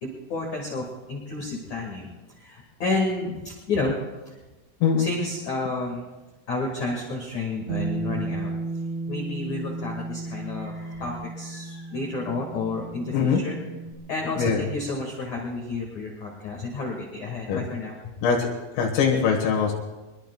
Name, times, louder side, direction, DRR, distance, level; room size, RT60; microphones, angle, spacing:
voice 1, 0.0-4.0 5.0-6.1 6.5-8.5 9.1-13.6 14.1-17.9, left 3 dB, 55° left, -2 dB, 2.2 m, -31 dB
Bass guitar, 7.7-13.9, right 3 dB, 70° right, 2.9 m, -34 dB
voice 2, 13.1-13.4 14.4-14.6 17.5-17.6 18.2-18.5 18.8-19.7, left 6 dB, 80° left, -1 dB, 4.1 m, -22 dB
23.5 x 22.0 x 2.3 m, 1.1 s
omnidirectional pair, 5.8 m